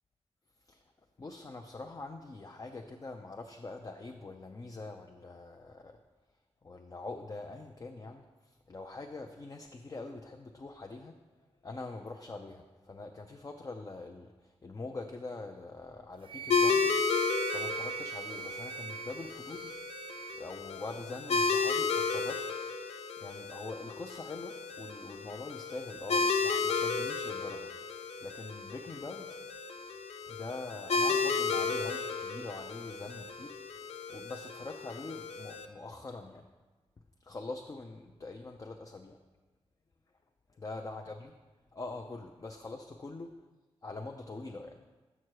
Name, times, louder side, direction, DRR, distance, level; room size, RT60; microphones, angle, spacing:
voice 1, 1.2-6.0 6.6-11.2 11.6-17.1 17.5-19.7 20.3-22.5 22.9-29.3 30.3-33.6 34.1-36.5 37.2-39.2 40.5-41.3 41.7-43.3 43.8-44.8, left 3 dB, 35° left, 3 dB, 0.5 m, -44 dB
Wind instrument woodwind instrument, 16.2-20.4, right 9 dB, 55° right, 0.5 m, -40 dB
sound 1, 16.5-35.6, left 4 dB, 85° left, 0.5 m, -33 dB
6.7 x 6.0 x 4.7 m, 1.2 s
cardioid pair, 80°, 11 cm